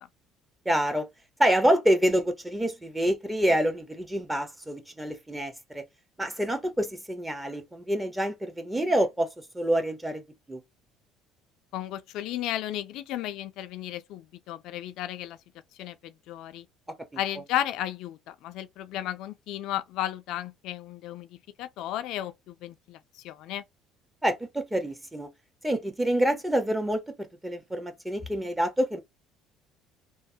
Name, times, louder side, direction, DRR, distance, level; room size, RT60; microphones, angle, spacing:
voice 1, 0.6-1.0 1.4-5.8 6.2-9.3 9.5-10.2 10.5-10.6 24.2-25.3 25.6-29.0, equal, 10° right, 0.9 m, -27 dB
voice 2, 11.7-15.4 15.8-16.7 17.2-23.0 23.2-23.6, left 12 dB, 70° left, 0.3 m, -34 dB
3.0 x 2.1 x 2.6 m
supercardioid pair, 95°, 0 cm